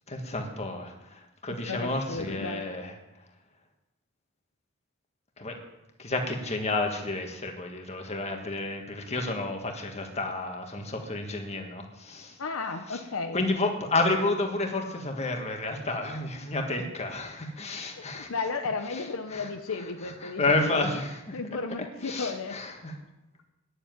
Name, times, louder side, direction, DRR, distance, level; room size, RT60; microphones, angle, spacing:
voice 1, 0.1-2.9 5.4-5.5 6.0-12.4 12.9-13.0 13.3-18.3 19.3-19.5 20.0-21.4 22.0-22.9, left 2 dB, 30° left, 3 dB, 1.7 m, -30 dB
voice 2, 1.7-2.6 12.4-13.4 16.6-16.7 18.1-20.9 21.3-22.6, left 4 dB, 70° left, 6 dB, 0.8 m, -34 dB
9.8 x 7.3 x 9.4 m, 0.92 s
head